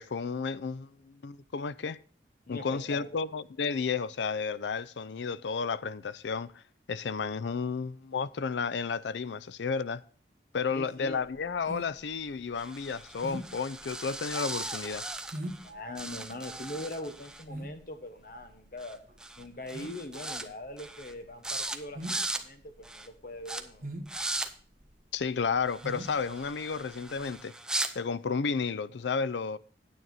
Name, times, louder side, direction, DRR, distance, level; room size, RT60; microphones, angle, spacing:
voice 1, 0.0-2.0 2.5-6.6 6.9-10.0 10.5-15.1 25.1-27.5 27.9-29.6, left 5 dB, 85° left, 0.5 m, -32 dB
voice 2, 2.5-3.2 10.7-11.2 15.6-19.0 19.4-23.9, left 1 dB, 50° left, 1.1 m, -42 dB
sound 1, 11.2-27.4, right 1 dB, 45° right, 1.7 m, -44 dB
sound 2, 12.6-15.7 16.0-17.4 18.8-18.9 19.2-19.4 19.7-20.5 20.8-21.1 21.4-21.8 22.0-22.4 22.8-23.1 23.5-23.6 24.1-24.5 25.7-27.9, right 2 dB, 5° right, 0.5 m, -37 dB
9.4 x 9.0 x 4.0 m
head